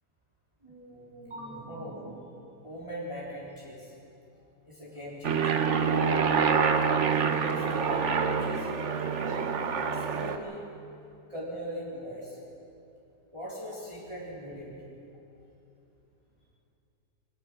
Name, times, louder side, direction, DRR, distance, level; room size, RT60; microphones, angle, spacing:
voice 1, 0.6-2.3 2.6-3.9 4.6-5.4 6.7-8.8 9.2-9.5 9.8-10.6 11.3-12.4 13.3-14.7, equal, 15° right, -7 dB, 3.5 m, -40 dB
Aircraft, 5.2-10.4, right 6 dB, 50° right, 1.2 m, -26 dB
23.5 x 18.5 x 6.1 m, 2.8 s
omnidirectional pair, 1.7 m